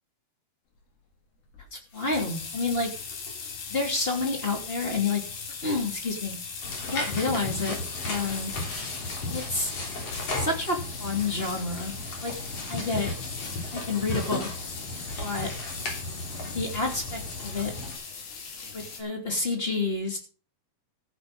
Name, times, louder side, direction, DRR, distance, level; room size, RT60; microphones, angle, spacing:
sound 1, 1.5-19.0, left 5 dB, 80° left, 4.6 m, -40 dB
voice 1, 1.7-2.9 3.7-5.2 5.6-6.3 6.9-7.8 8.0-8.5 9.3-9.7 10.4-11.9 12.2-12.3 12.7-13.1 13.7-14.5 15.2-15.5 16.5-17.7 18.7-20.2, left 3 dB, 15° left, 2 dB, 2.7 m, -29 dB
sound 2, 6.6-17.9, left 2 dB, 45° left, 4.2 m, -35 dB
14.5 x 8.2 x 5.4 m, 0.38 s
omnidirectional pair, 4.2 m